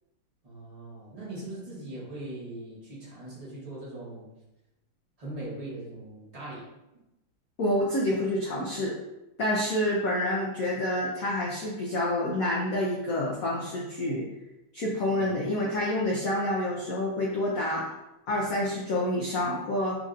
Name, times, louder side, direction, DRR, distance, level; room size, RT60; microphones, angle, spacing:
voice 1, 0.4-4.3 5.2-6.7 15.1-15.4, right 2 dB, 20° right, -7 dB, 1.1 m, -40 dB
voice 2, 7.6-8.9 9.4-14.2 14.7-17.9 18.3-20.0, left 1 dB, 65° left, -5 dB, 0.9 m, -28 dB
6.1 x 2.7 x 2.5 m, 0.94 s
omnidirectional pair, 2.3 m